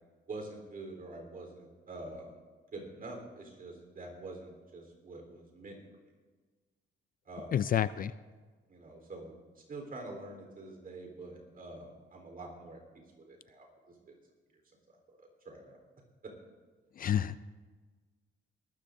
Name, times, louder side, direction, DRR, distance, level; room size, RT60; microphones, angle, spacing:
voice 1, 0.3-2.3 2.7-5.8 7.2-7.6 8.7-12.8 13.2-14.1 14.9-15.8 16.2-16.3, right 2 dB, 45° right, 2 dB, 3.9 m, -46 dB
voice 2, 7.5-8.1 17.0-17.4, left 10 dB, 45° left, 16 dB, 0.4 m, -29 dB
20.0 x 13.5 x 2.7 m, 1.4 s
cardioid pair, 90°, 20 cm